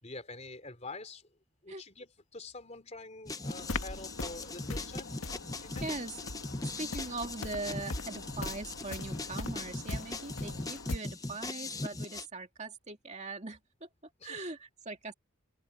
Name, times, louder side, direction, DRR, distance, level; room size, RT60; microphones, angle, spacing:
voice 1, 0.0-1.3 1.6-5.1 5.5-5.9 14.2-14.5, left 3 dB, 30° left, 3.8 m, -46 dB
sound 1, 3.3-12.3, left 2 dB, 15° left, 0.8 m, -40 dB
sound 2, 3.4-11.0, left 2 dB, 85° left, 1.6 m, -41 dB
voice 2, 5.8-6.1 6.6-13.9 14.2-15.1, right 3 dB, 35° right, 2.3 m, -41 dB
open air
head